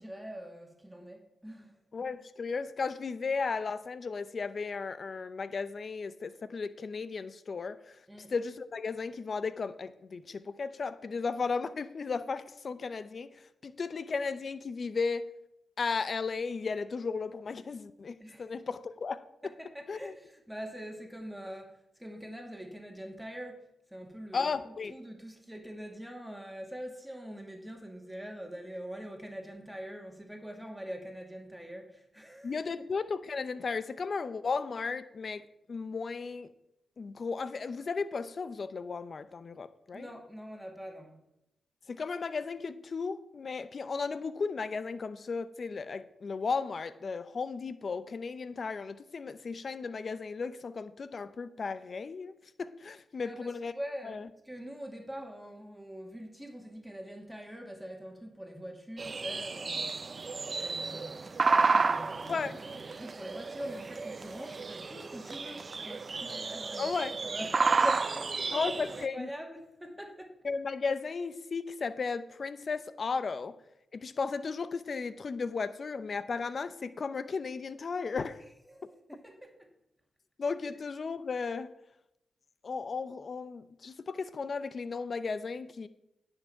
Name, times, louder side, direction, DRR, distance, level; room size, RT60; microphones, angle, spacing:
voice 1, 0.0-1.7 8.1-8.3 18.2-18.4 19.4-32.5 39.9-41.2 53.2-60.1 60.6-67.0 67.2-70.4 78.7-79.5, equal, 5° right, 2.4 m, -44 dB
voice 2, 1.9-8.0 8.3-15.3 15.8-19.2 19.9-20.2 24.3-24.9 32.4-35.4 35.7-36.5 37.0-40.1 41.9-53.7 54.0-54.3 62.3-62.6 66.8-67.1 68.5-69.3 70.4-73.6 73.9-78.4 78.8-78.9 80.4-81.7 82.6-85.9, left 4 dB, 55° left, 0.7 m, -35 dB
sound 1, 59.0-69.1, right 4 dB, 50° right, 0.6 m, -31 dB
9.9 x 6.7 x 5.7 m
supercardioid pair, 45°, 0 cm